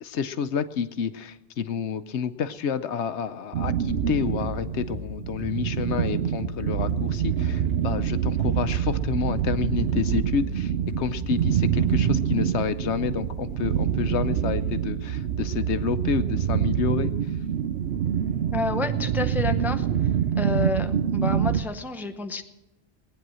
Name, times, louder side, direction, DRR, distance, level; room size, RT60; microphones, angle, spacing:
voice 1, 0.0-17.1, left 7 dB, 75° left, 12 dB, 1.0 m, -29 dB
sound 1, 3.5-21.6, right 9 dB, 65° right, 0.8 m, -26 dB
sound 2, 3.6-12.2, equal, 45° left, 4.5 m, -39 dB
voice 2, 18.5-19.9 20.4-22.4, left 3 dB, ahead, 5 dB, 0.6 m, -30 dB
19.0 x 9.6 x 6.2 m, 1.0 s
omnidirectional pair, 1.2 m